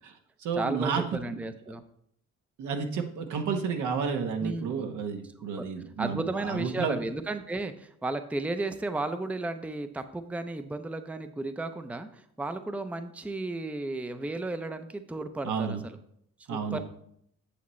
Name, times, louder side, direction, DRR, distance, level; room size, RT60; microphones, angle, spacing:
voice 1, 0.0-1.4 2.6-7.0 15.4-15.8 16.5-16.8, right 6 dB, 75° right, 5 dB, 1.2 m, -31 dB
voice 2, 0.5-1.8 4.4-4.9 5.6-5.7 6.0-16.0 16.5-16.8, right 2 dB, 5° right, 9 dB, 0.5 m, -34 dB
8.4 x 6.9 x 3.2 m, 0.70 s
cardioid pair, 90°, 30 cm